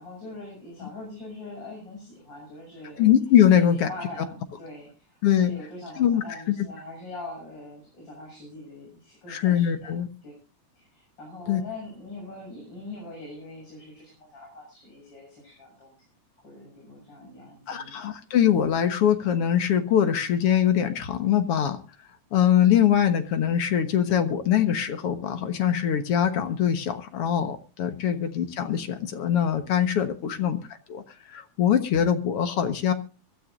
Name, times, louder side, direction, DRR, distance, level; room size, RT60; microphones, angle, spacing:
voice 1, 0.0-3.1 3.5-9.9 10.2-10.3 10.8-15.9 16.4-18.0 28.0-28.2 30.3-30.6, left 2 dB, 35° left, -2 dB, 7.7 m, -42 dB
voice 2, 3.0-3.9 5.2-5.5 6.0-6.5 9.3-10.1 11.5-11.6 17.7-21.8 22.3-30.6 30.9-31.0 31.3-32.9, left 9 dB, 55° left, 8 dB, 2.0 m, -22 dB
25.0 x 13.0 x 2.6 m, 0.33 s
omnidirectional pair, 3.5 m